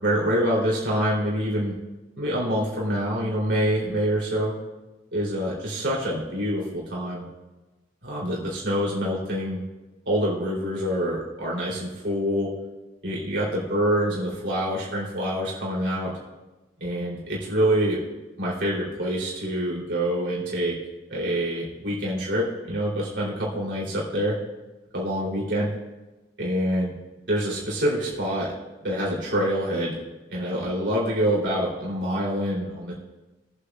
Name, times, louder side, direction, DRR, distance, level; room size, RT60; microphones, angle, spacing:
voice 1, 0.0-1.7 2.2-4.5 5.1-7.2 8.0-9.6 10.1-12.5 13.0-16.1 16.8-18.0 18.4-20.8 21.1-24.4 24.9-25.7 26.4-26.9 27.3-28.5 28.8-30.0 30.3-32.9, equal, 75° right, -5 dB, 2.9 m, -26 dB
21.5 x 8.3 x 2.3 m, 1.1 s
head